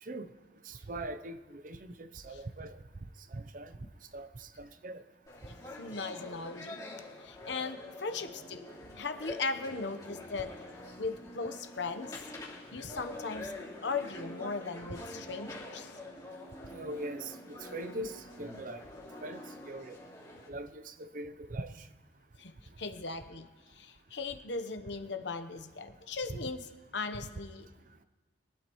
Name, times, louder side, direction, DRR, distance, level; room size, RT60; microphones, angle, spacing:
voice 1, 0.6-2.8 3.3-3.7 4.1-5.0 16.7-18.8 19.2-20.0 20.5-21.9 26.3-26.5, right 1 dB, 45° right, 11 dB, 0.6 m, -41 dB
sound 1, 5.3-20.5, left 1 dB, 20° left, 2.8 m, -46 dB
voice 2, 5.8-6.8 7.2-8.6 9.0-10.5 11.0-12.2 12.7-13.5 13.8-15.9 22.4-22.5 22.8-23.5 23.7-26.6 26.9-27.7, left 4 dB, 65° left, 8 dB, 0.9 m, -38 dB
22.5 x 12.0 x 3.1 m, 1.3 s
head